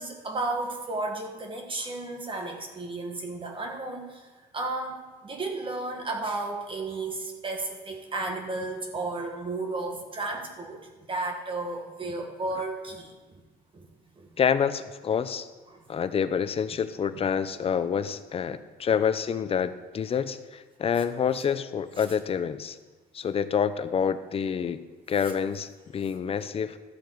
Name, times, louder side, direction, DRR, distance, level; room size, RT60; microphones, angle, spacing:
voice 1, 0.0-4.3 4.5-10.8 11.1-13.4 13.7-13.9 14.2-14.3 15.7-15.8 17.1-17.2 18.5-18.6 22.0-22.1, right 2 dB, 30° right, 2 dB, 1.6 m, -33 dB
voice 2, 14.4-15.5 15.9-22.8 23.1-24.8 25.1-26.8, left 7 dB, 35° left, 12 dB, 0.6 m, -27 dB
13.0 x 7.1 x 4.7 m, 1.3 s
cardioid pair, 110°, 17 cm